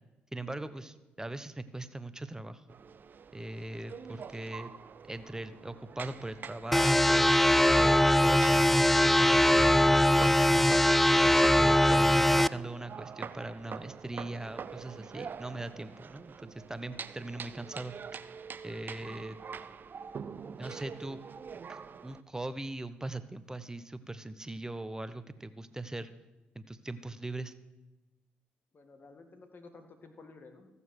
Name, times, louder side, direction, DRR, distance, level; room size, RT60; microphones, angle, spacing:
voice 1, 0.3-2.6 3.3-4.7 5.1-7.4 7.7-10.8 11.2-17.9 18.6-19.4 20.6-21.2 21.7-26.1 26.5-27.5, right 2 dB, 15° right, 12 dB, 1.0 m, -40 dB
sound 1, 2.7-22.2, right 6 dB, 45° right, 0.6 m, -44 dB
sound 2, 6.7-12.5, left 1 dB, 5° left, 0.3 m, -22 dB
voice 2, 28.7-30.7, left 3 dB, 45° left, 6 dB, 1.9 m, -53 dB
14.5 x 7.0 x 6.6 m, 1.0 s
supercardioid pair, 55°, 4 cm